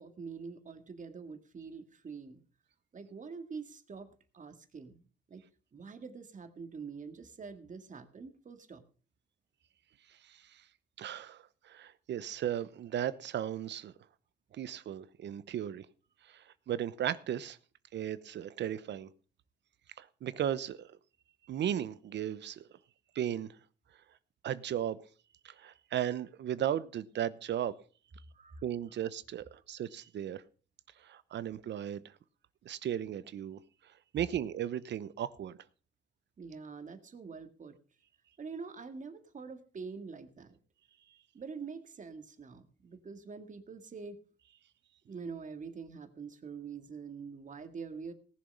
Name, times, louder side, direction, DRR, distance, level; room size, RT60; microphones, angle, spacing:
voice 1, 0.0-2.4 2.9-4.1 4.3-5.4 5.7-8.8 28.3-28.6 36.4-37.8 38.4-40.6 41.3-44.2 45.1-48.1, right 5 dB, 40° right, 2.0 m, -45 dB
voice 2, 11.0-13.9 14.5-15.9 16.3-17.6 17.9-19.1 20.0-20.9 21.5-22.6 23.1-23.5 24.4-25.0 25.4-27.7 28.6-30.4 31.0-32.0 32.6-33.6 34.1-35.6, right 10 dB, 65° right, 0.8 m, -36 dB
18.5 x 7.2 x 5.5 m
cardioid pair, 90°, 20 cm